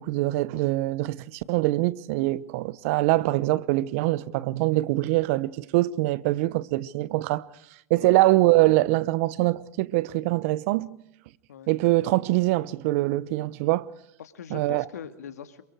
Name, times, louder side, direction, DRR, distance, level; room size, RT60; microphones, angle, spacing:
voice 1, 0.0-7.4 7.9-10.9 11.7-13.9 14.5-14.8, right 18 dB, 60° right, 0.9 m, -23 dB
voice 2, 14.2-15.6, left 8 dB, 80° left, 2.0 m, -41 dB
27.0 x 23.5 x 4.8 m
hypercardioid pair, 100°, 8 cm